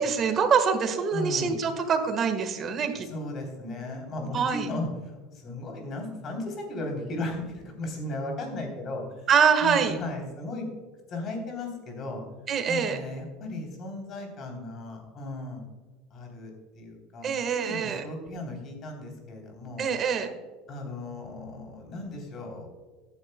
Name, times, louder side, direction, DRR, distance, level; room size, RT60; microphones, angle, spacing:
voice 1, 0.0-3.1 4.3-4.7 9.3-10.0 12.5-13.0 17.2-18.0 19.8-20.3, right 6 dB, 30° right, 7 dB, 1.4 m, -25 dB
voice 2, 1.1-1.6 2.9-9.3 9.6-10.7 11.1-12.2 12.7-15.6 16.1-19.9 20.7-22.7, left 2 dB, 35° left, 2 dB, 3.2 m, -36 dB
14.5 x 9.9 x 2.2 m, 1.3 s
cardioid pair, 150°, 0 cm